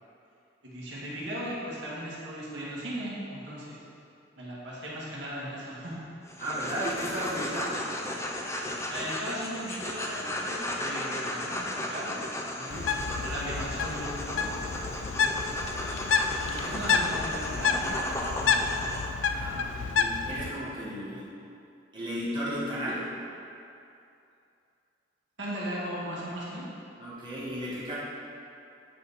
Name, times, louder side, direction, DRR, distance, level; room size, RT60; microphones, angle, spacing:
voice 1, 0.6-3.8 4.4-6.0 8.9-12.2 13.0-14.6 15.2-16.0 16.5-18.9 19.3-19.9 20.2-20.5 21.0-21.2 25.4-26.7, right 1 dB, 70° right, -7 dB, 1.8 m, -38 dB
sound 1, 6.3-19.1, left 1 dB, 15° left, 0.6 m, -35 dB
voice 2, 6.4-7.8 12.6-12.9 19.3-21.3 21.9-23.1 27.0-28.0, equal, 25° right, -9 dB, 1.4 m, -34 dB
Bird, 12.7-20.5, left 5 dB, 85° left, 0.4 m, -29 dB
8.5 x 5.3 x 4.2 m, 2.6 s
head